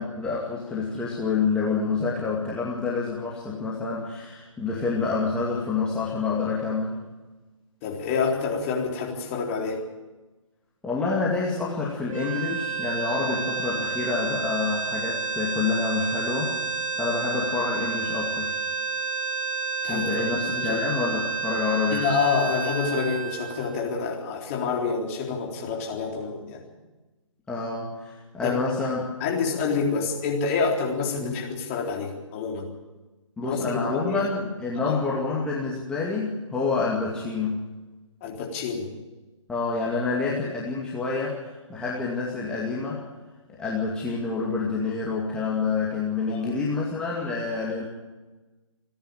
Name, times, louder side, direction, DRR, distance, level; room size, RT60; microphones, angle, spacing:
voice 1, 0.0-7.0 10.8-18.5 19.9-22.0 27.5-29.1 31.2-31.3 33.4-37.6 39.5-43.0 43.5-47.8, left 4 dB, 5° left, -6 dB, 2.4 m, -28 dB
voice 2, 7.8-9.8 19.8-20.8 21.9-26.7 28.4-28.6 29.2-32.7 33.4-34.3 34.8-35.0 38.2-38.9 46.3-46.6, left 5 dB, 25° left, -1 dB, 3.8 m, -28 dB
sound 1, 12.1-24.3, right 6 dB, 85° right, 1.9 m, -30 dB
28.5 x 10.5 x 8.9 m, 1.2 s
figure-of-eight pair, 140°, 17 cm